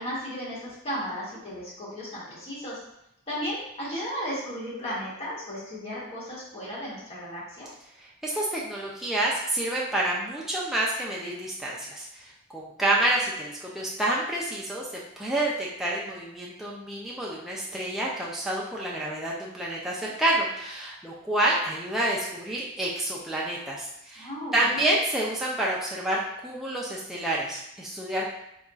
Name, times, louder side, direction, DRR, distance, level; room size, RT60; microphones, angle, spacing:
voice 1, 0.0-2.8 3.3-7.7 24.2-24.8, equal, 30° left, -7 dB, 1.2 m, -35 dB
voice 2, 8.0-28.4, right 1 dB, ahead, -5 dB, 0.3 m, -28 dB
3.9 x 2.3 x 2.3 m, 0.81 s
head